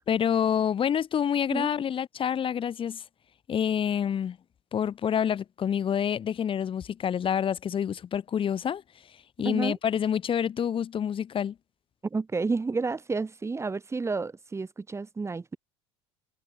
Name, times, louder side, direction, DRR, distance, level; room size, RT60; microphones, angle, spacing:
voice 1, 0.1-3.0 3.5-4.4 4.7-8.8 9.4-11.5, left 8 dB, 35° left, 5.9 m, -27 dB
voice 2, 9.4-9.8 12.1-15.6, right 4 dB, 20° right, 5.2 m, -30 dB
hypercardioid pair, 80°, 15 cm